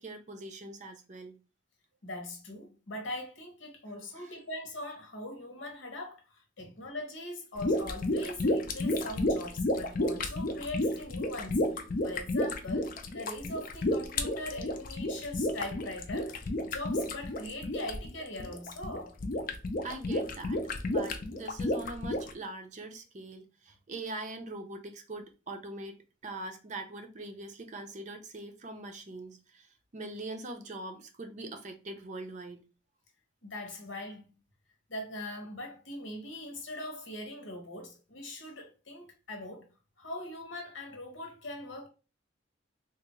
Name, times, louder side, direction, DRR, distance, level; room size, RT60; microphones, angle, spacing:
voice 1, 0.0-1.4 4.1-4.3 6.6-6.7 19.8-20.6 20.9-32.6, right 2 dB, 40° right, 0.5 m, -42 dB
voice 2, 2.0-19.1 33.4-34.4 34.9-39.7 40.0-41.9, left 1 dB, 85° left, 1.1 m, -41 dB
sound 1, 7.6-22.3, left 1 dB, 50° left, 0.5 m, -31 dB
3.4 x 2.4 x 3.0 m
head